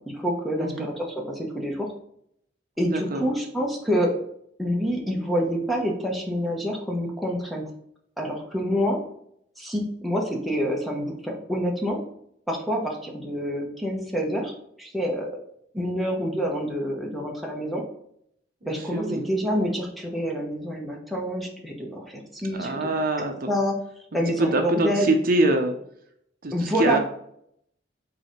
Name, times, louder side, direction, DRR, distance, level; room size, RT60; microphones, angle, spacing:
voice 1, 0.0-1.9 2.8-4.1 4.6-7.7 8.2-9.0 9.6-12.0 12.5-14.5 14.8-15.3 15.7-17.8 18.6-22.9 23.2-23.8 24.1-25.1 26.5-27.0, equal, ahead, 0 dB, 1.2 m, -27 dB
voice 2, 0.6-0.9 2.9-3.2 18.9-19.2 22.6-23.5 24.4-25.7 26.4-27.0, right 2 dB, 50° right, 4 dB, 0.7 m, -24 dB
4.8 x 4.0 x 5.0 m, 0.71 s
head